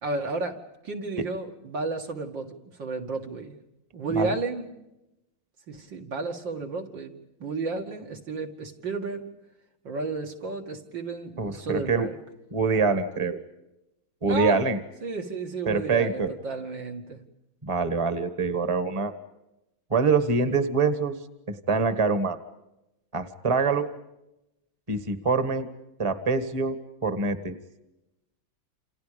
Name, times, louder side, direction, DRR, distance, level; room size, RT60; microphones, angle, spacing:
voice 1, 0.0-3.6 3.9-4.7 5.7-7.1 7.4-9.2 9.8-12.2 14.2-14.6 15.0-17.2, right 3 dB, 65° right, 2 dB, 3.1 m, -32 dB
voice 2, 11.4-12.1 12.5-13.4 14.2-14.8 15.6-16.3 17.6-19.1 19.9-21.2 21.7-22.4 23.1-23.9 24.9-25.7 26.0-27.5, right 4 dB, 15° right, 10 dB, 1.5 m, -25 dB
28.5 x 28.5 x 5.2 m, 0.92 s
omnidirectional pair, 2.2 m